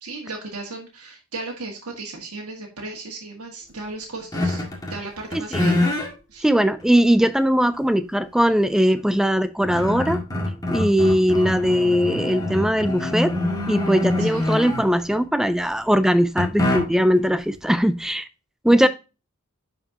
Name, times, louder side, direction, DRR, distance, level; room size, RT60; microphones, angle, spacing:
voice 1, 0.0-4.6 4.9-5.9 6.3-6.5 14.2-14.6 18.8-18.9, right 3 dB, 90° right, 1.9 m, -36 dB
sound 1, 4.3-5.0 5.3-6.1 6.8-6.9 9.0-9.1 9.4-15.1 16.4-17.2, left 1 dB, 15° left, 1.9 m, -25 dB
voice 2, 6.4-10.2 10.7-13.3 13.7-18.3 18.6-18.9, equal, ahead, 0.3 m, -20 dB
10.5 x 4.8 x 2.8 m
head